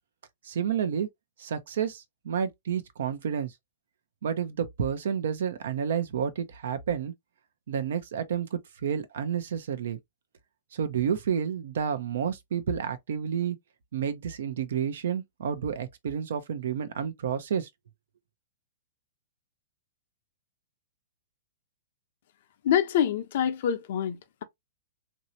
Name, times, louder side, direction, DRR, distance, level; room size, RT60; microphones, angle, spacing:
voice 1, 0.4-1.1 1.4-3.5 4.2-7.1 7.7-10.0 10.7-13.6 13.9-17.7, right 8 dB, 65° right, 0.6 m, -30 dB
voice 2, 22.6-24.4, left 9 dB, 55° left, 0.6 m, -26 dB
3.2 x 2.7 x 2.7 m
hypercardioid pair, 115°, 0 cm